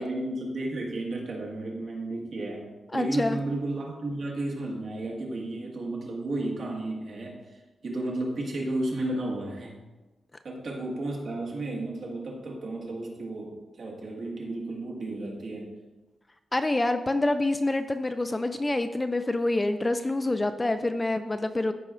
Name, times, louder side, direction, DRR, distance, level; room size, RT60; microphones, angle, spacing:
voice 1, 0.0-9.8 10.4-15.7, right 2 dB, 60° right, -2 dB, 1.8 m, -33 dB
voice 2, 2.9-3.4 16.5-21.7, left 2 dB, 20° left, 9 dB, 0.3 m, -27 dB
14.0 x 5.1 x 2.5 m, 1.2 s
wide cardioid pair, 140°, 0 cm